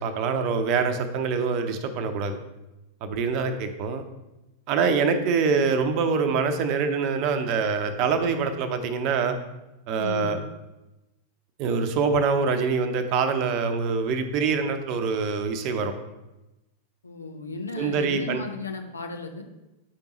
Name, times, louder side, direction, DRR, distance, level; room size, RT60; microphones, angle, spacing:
voice 1, 0.0-2.4 3.0-4.0 4.7-9.4 9.9-10.4 11.6-15.9 17.8-18.4, right 5 dB, 40° right, 7 dB, 0.8 m, -25 dB
voice 2, 10.0-10.3 17.0-19.4, left 3 dB, 75° left, 4 dB, 0.8 m, -35 dB
8.6 x 5.3 x 3.0 m, 0.98 s
figure-of-eight pair, 90°, 0 cm